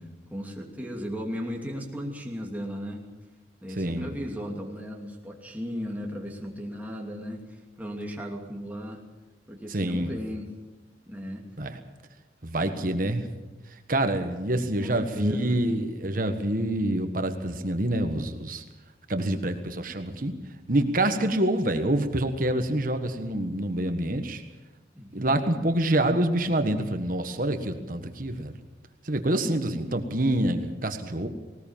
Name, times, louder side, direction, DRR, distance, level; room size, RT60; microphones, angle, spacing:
voice 1, 0.3-3.1 3.6-9.0 9.5-10.5 11.1-11.4 12.6-13.0 14.8-15.6 24.9-25.5, equal, 10° right, 0 dB, 2.8 m, -36 dB
voice 2, 3.8-4.1 9.7-10.1 11.6-11.8 12.4-13.3 13.7-18.6 19.1-20.3 20.7-24.4 25.1-28.5 29.0-31.3, right 1 dB, 50° right, 7 dB, 1.5 m, -26 dB
19.5 x 19.0 x 7.4 m, 1.1 s
head